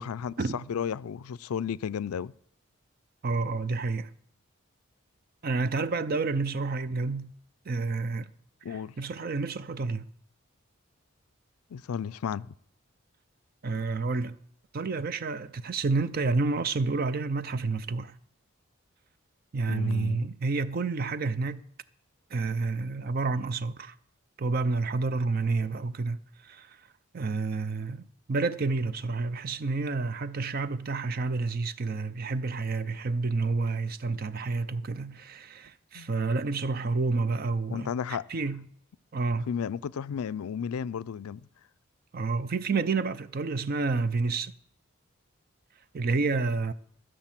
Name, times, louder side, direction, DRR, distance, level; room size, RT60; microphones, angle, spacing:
voice 1, 0.0-2.3 8.6-8.9 11.7-12.5 19.7-20.3 35.9-36.1 37.7-38.3 39.5-41.5, left 7 dB, 85° left, 0.4 m, -33 dB
voice 2, 3.2-4.1 5.4-7.3 7.7-8.3 8.7-10.0 13.6-14.4 14.7-18.1 19.5-21.6 22.3-23.9 24.4-26.8 27.1-37.9 38.3-38.7 39.1-39.5 42.1-44.5 45.9-46.7, right 3 dB, 45° right, 0.5 m, -29 dB
15.0 x 6.4 x 7.5 m
head